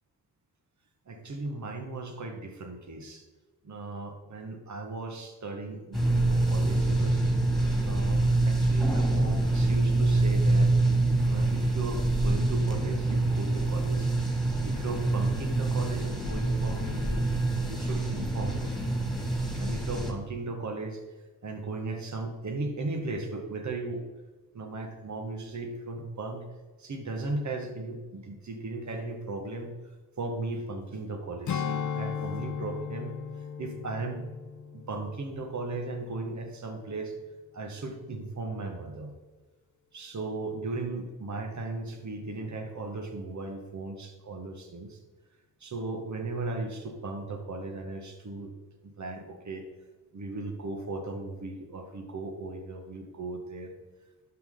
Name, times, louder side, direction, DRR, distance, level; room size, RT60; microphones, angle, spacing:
voice 1, 1.1-3.2 3.6-7.2 7.8-10.7 11.3-14.1 14.6-17.3 17.7-18.7 19.5-21.0 21.4-24.0 24.5-26.4 26.8-29.7 30.2-33.1 33.6-34.3 34.7-37.1 37.5-39.1 39.9-45.0 45.6-48.5 48.8-49.6 50.1-53.7, right 3 dB, 55° right, 4 dB, 1.6 m, -36 dB
sound 1, 5.9-20.1, right 2 dB, ahead, 2.3 m, -26 dB
Strum, 31.5-36.2 36.5-36.8, left 7 dB, 60° left, 0.7 m, -36 dB
11.5 x 6.1 x 3.8 m, 1.3 s
cardioid pair, 55°, 35 cm